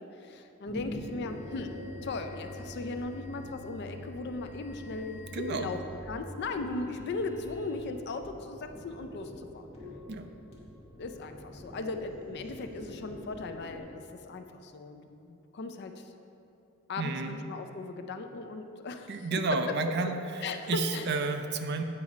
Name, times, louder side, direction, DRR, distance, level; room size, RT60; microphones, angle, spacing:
voice 1, 0.0-1.7 2.0-5.8 6.1-9.7 11.0-15.9 16.9-19.3 20.4-21.1, left 3 dB, 55° left, 7 dB, 0.4 m, -38 dB
sound 1, 0.6-13.8, left 1 dB, 30° left, 1.5 m, -45 dB
voice 2, 5.3-5.7 10.1-10.3 17.0-17.4 19.1-20.2 20.7-21.8, right 3 dB, 55° right, 7 dB, 0.5 m, -31 dB
8.6 x 4.1 x 4.9 m, 2.7 s
head